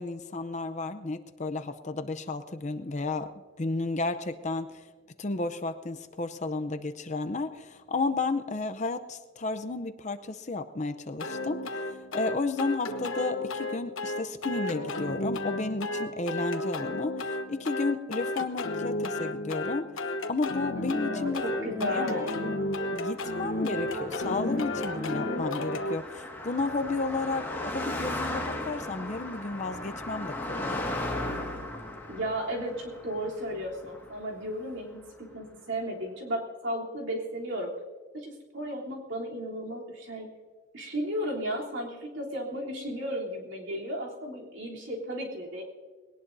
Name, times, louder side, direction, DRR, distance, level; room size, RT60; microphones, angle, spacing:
voice 1, 0.0-3.3 3.6-4.8 5.2-19.9 20.3-21.5 21.8-22.3 22.9-31.1, left 3 dB, 35° left, 9 dB, 0.6 m, -32 dB
sound 1, 11.2-26.0, left 2 dB, 75° left, 1.1 m, -33 dB
sound 2, 20.8-23.1 23.4-25.9, left 1 dB, 15° right, 2.9 m, -37 dB
voice 2, 21.0-22.3 32.1-35.0 35.3-37.7 38.1-40.3 40.7-45.6, equal, 65° right, -2 dB, 3.3 m, -34 dB
Car passing by, 23.3-34.8, left 1 dB, 10° left, 1.8 m, -37 dB
21.0 x 18.5 x 2.7 m, 1.5 s
head